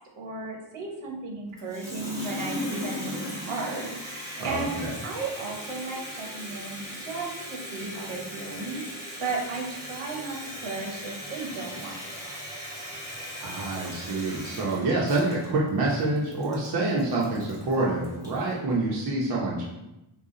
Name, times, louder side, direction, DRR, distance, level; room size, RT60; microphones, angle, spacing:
voice 1, 0.2-4.8 5.0-11.9 12.2-12.3, right 3 dB, 80° right, -1 dB, 1.3 m, -35 dB
Water tap faucet, 1.6-18.5, equal, 5° right, 0.9 m, -38 dB
voice 2, 4.4-5.0 13.4-19.6, right 2 dB, 50° right, -5 dB, 0.9 m, -27 dB
5.5 x 2.3 x 3.8 m, 0.93 s
wide cardioid pair, 180°, 49 cm